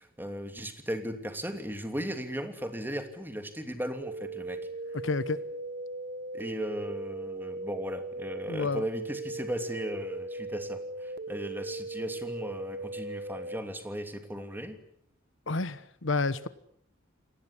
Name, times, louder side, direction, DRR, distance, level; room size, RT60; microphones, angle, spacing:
voice 1, 0.0-4.6 6.3-14.8, equal, 10° right, 7 dB, 2.9 m, -37 dB
sound 1, 4.0-13.6, right 2 dB, 45° right, 1.5 m, -38 dB
voice 2, 5.0-5.4 8.5-8.8 15.5-16.5, left 3 dB, 65° left, 15 dB, 1.1 m, -30 dB
28.5 x 19.5 x 9.9 m, 0.71 s
head